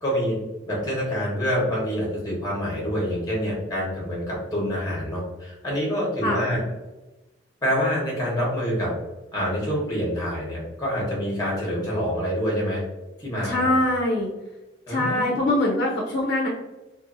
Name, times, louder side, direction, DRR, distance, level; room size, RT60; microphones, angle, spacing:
voice 1, 0.0-6.6 7.6-8.9 9.3-12.8 13.2-13.8 14.9-15.4, equal, 20° left, -4 dB, 1.1 m, -26 dB
voice 2, 13.4-14.3 14.9-16.5, left 1 dB, 55° left, -3 dB, 0.5 m, -23 dB
2.7 x 2.5 x 2.5 m, 1.1 s
head